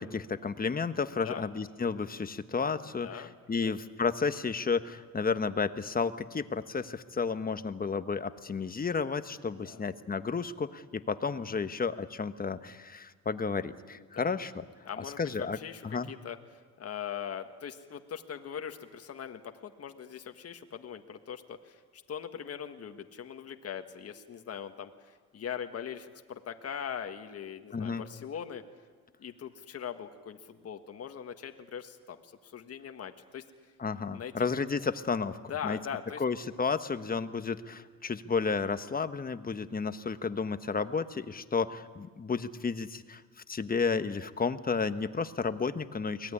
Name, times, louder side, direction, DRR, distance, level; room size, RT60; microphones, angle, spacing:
voice 1, 0.0-14.6 15.0-15.6 15.8-16.1 27.7-28.0 33.8-35.4 35.6-35.8 36.2-43.2 43.5-46.3, left 5 dB, 30° left, 11 dB, 1.3 m, -32 dB
voice 2, 2.8-3.3 3.6-3.8 9.6-9.8 13.9-14.5 14.8-28.6 29.2-33.7 34.1-34.5 35.5-36.2, left 8 dB, 55° left, 6 dB, 1.7 m, -41 dB
23.5 x 19.0 x 10.0 m, 1.5 s
cardioid pair, 90°, 30 cm